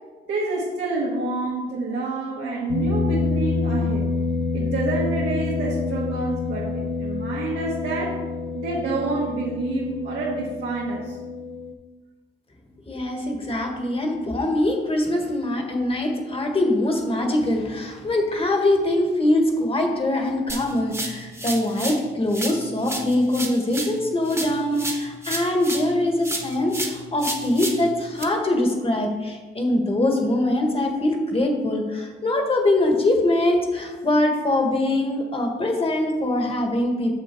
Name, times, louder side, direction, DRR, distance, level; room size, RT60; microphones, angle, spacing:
voice 1, 0.3-4.1 4.5-8.1 8.5-11.2, right 3 dB, 80° right, -6 dB, 1.7 m, -28 dB
sound 1, 2.7-11.7, left 4 dB, 70° left, 0.8 m, -27 dB
voice 2, 12.9-37.1, left 1 dB, 30° left, 2 dB, 1.5 m, -23 dB
sound 2, 20.5-22.0 22.3-25.9 26.2-28.2, right 1 dB, 15° right, 1.3 m, -32 dB
6.8 x 6.5 x 4.5 m, 1.3 s
cardioid pair, 80°, 20 cm